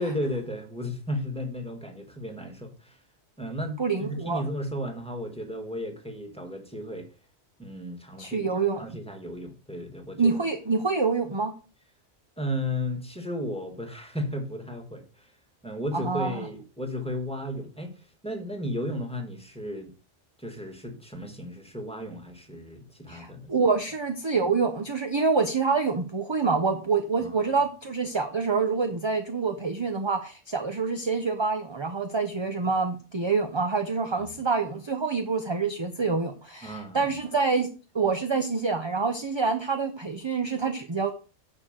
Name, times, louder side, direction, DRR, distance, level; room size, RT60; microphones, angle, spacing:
voice 1, 0.0-3.0 3.4-7.1 7.6-10.5 12.4-15.3 15.6-19.9 20.4-23.5 27.2-27.5 34.1-34.4 36.6-37.2, left 1 dB, 5° left, 1.7 m, -34 dB
voice 2, 3.8-4.5 8.2-8.8 10.2-11.5 15.9-16.4 23.1-41.1, right 4 dB, 25° right, 0.7 m, -26 dB
9.8 x 4.4 x 6.6 m
omnidirectional pair, 1.2 m